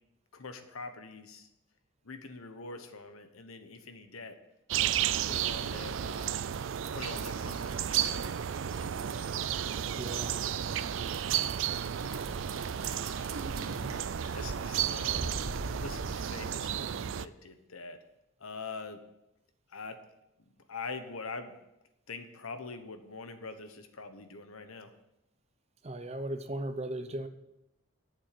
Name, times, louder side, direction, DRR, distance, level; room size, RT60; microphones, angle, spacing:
voice 1, 0.3-1.5 2.0-4.4 4.9-6.4 6.9-8.3 12.1-12.3 12.7-13.1 14.3-15.4 15.8-18.0 18.4-19.0 19.7-20.0 20.7-21.5 22.1-24.9, left 4 dB, 90° left, 9 dB, 1.1 m, -44 dB
sound 1, 4.7-17.3, right 9 dB, 65° right, 0.4 m, -33 dB
sound 2, 6.1-16.3, right 3 dB, 80° right, 1.2 m, -44 dB
voice 2, 10.0-10.3 25.8-27.3, right 1 dB, 30° right, 9 dB, 0.7 m, -36 dB
9.0 x 7.0 x 7.7 m, 0.89 s
head